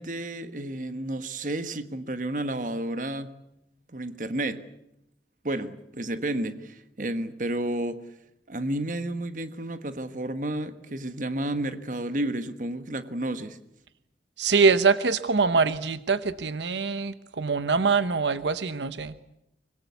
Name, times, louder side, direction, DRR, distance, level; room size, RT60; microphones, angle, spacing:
voice 1, 0.0-3.4 3.9-4.6 5.4-8.1 8.5-13.6, right 1 dB, 45° right, 11 dB, 1.4 m, -31 dB
voice 2, 14.4-19.1, right 4 dB, 85° right, 13 dB, 0.9 m, -24 dB
24.5 x 21.5 x 8.3 m, 0.82 s
head